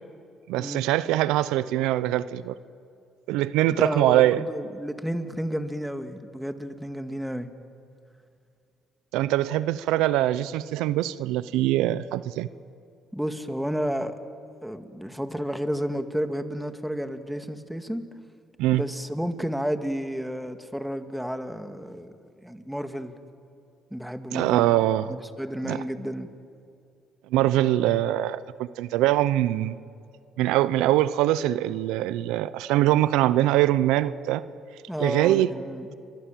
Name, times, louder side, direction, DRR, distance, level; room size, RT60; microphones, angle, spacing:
voice 1, 0.5-2.6 3.3-4.5 9.1-12.5 18.6-18.8 24.3-25.1 25.6-25.8 27.3-29.8 30.4-34.4 35.0-35.5, right 14 dB, 85° right, 16 dB, 0.7 m, -23 dB
voice 2, 3.7-7.5 13.1-14.2 14.6-18.1 18.7-23.1 23.9-24.7 25.1-26.3 34.9-36.0, equal, ahead, 7 dB, 2.2 m, -31 dB
29.5 x 24.0 x 7.6 m, 2.4 s
supercardioid pair, 70°, 0 cm